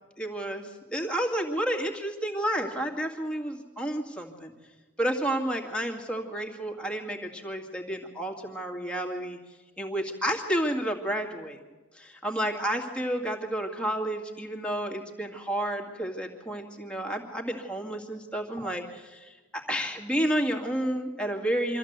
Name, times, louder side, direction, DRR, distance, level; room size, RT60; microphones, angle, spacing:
voice 1, 0.2-4.5 5.0-9.4 9.8-11.6 11.9-21.8, right 1 dB, 5° left, 1 dB, 2.2 m, -31 dB
24.5 x 14.5 x 8.2 m, 1.3 s
head